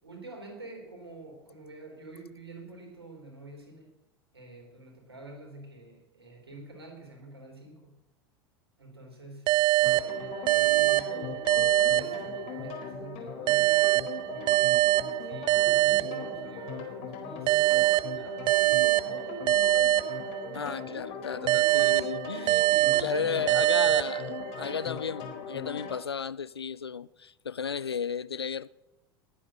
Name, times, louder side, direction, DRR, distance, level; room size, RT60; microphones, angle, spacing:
voice 1, 0.0-4.0 4.3-8.0 8.8-11.5 11.8-13.9 14.3-14.9 15.2-19.9 20.3-20.8 22.7-23.8, right 2 dB, 80° right, 4.0 m, -47 dB
sound 1, 9.5-12.8 13.5-16.8 17.5-20.8 21.5-24.8, right 18 dB, 35° right, 0.4 m, -25 dB
sound 2, 9.8-26.0, left 5 dB, 50° left, 4.2 m, -39 dB
voice 2, 20.5-22.7 23.0-28.7, left 6 dB, 80° left, 0.5 m, -34 dB
20.5 x 8.6 x 6.2 m
figure-of-eight pair, 80°, 13 cm